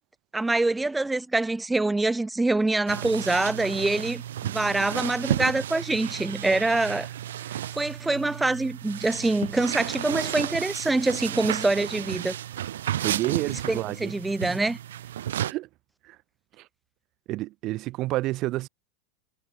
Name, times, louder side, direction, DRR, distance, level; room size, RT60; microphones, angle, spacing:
voice 1, 0.3-7.1 7.7-12.4 13.7-14.8, right 2 dB, 10° right, 3.2 m, -25 dB
sound 1, 2.9-15.5, right 11 dB, 65° right, 5.1 m, -33 dB
voice 2, 13.0-14.2 14.5-14.6 15.5-15.7 16.0-16.2 16.6-16.7 17.3-18.7, right 18 dB, 40° right, 4.4 m, -29 dB
figure-of-eight pair, 85°, 0 cm